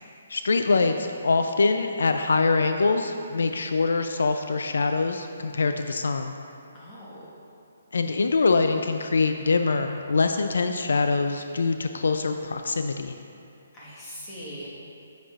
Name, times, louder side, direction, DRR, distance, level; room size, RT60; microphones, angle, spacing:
voice 1, 0.3-6.3 7.9-13.1, left 4 dB, 80° left, 6 dB, 0.3 m, -24 dB
voice 2, 6.7-7.2 13.7-14.8, equal, 15° left, -8 dB, 1.4 m, -41 dB
7.5 x 7.2 x 2.4 m, 2.7 s
hypercardioid pair, 165°, 0 cm